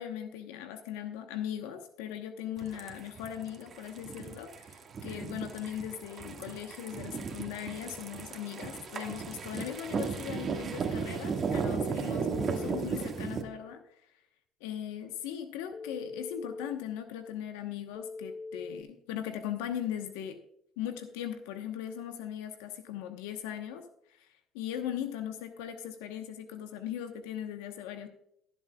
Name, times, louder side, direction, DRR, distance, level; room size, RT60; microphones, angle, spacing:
voice 1, 0.0-13.8 14.6-20.4 20.8-28.1, left 10 dB, 85° left, 7 dB, 1.0 m, -39 dB
sound 1, 2.6-13.4, right 5 dB, 40° right, 1.8 m, -35 dB
Telephone, 12.3-12.8 15.7-16.7 18.0-18.8, left 3 dB, 50° left, 1.1 m, -41 dB
21.5 x 7.3 x 2.3 m, 0.76 s
supercardioid pair, 90°, 0 cm